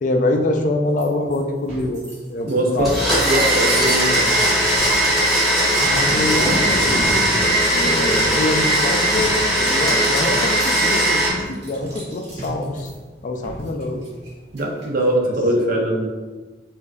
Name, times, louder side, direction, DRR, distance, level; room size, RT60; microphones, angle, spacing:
voice 1, 0.0-2.0 2.3-3.0 5.8-7.2 7.7-12.9 13.2-14.0 15.2-15.8, left 2 dB, 45° left, 4 dB, 0.4 m, -25 dB
sound 1, 1.0-1.4 1.8-15.0, equal, 75° right, 1.4 m, -33 dB
sound 2, 1.7-2.0 2.7-3.0 3.7-3.9 4.7-5.0 5.8-6.1 7.0-7.3 8.1-8.4 9.1-9.4 10.2-10.4 11.4-11.5 12.4-12.6 13.4-13.7, right 1 dB, 40° right, 1.0 m, -34 dB
voice 2, 2.4-2.9 3.2-4.3 14.5-16.1, right 1 dB, 55° right, 1 dB, 0.6 m, -21 dB
Domestic sounds home sounds, 2.8-11.3, right 1 dB, ahead, 1.2 m, -18 dB
4.9 x 2.5 x 2.3 m, 1.3 s
head